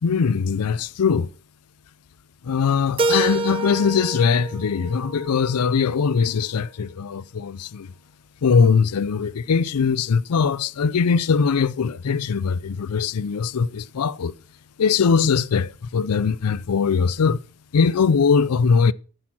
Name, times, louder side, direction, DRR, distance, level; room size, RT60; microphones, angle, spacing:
voice 1, 0.0-1.3 2.4-7.9 8.4-14.3 14.8-17.4 17.7-18.9, left 5 dB, 85° left, 0.5 m, -21 dB
Keyboard (musical), 3.0-5.9, right 3 dB, 25° right, 0.6 m, -27 dB
11.0 x 9.0 x 6.0 m
head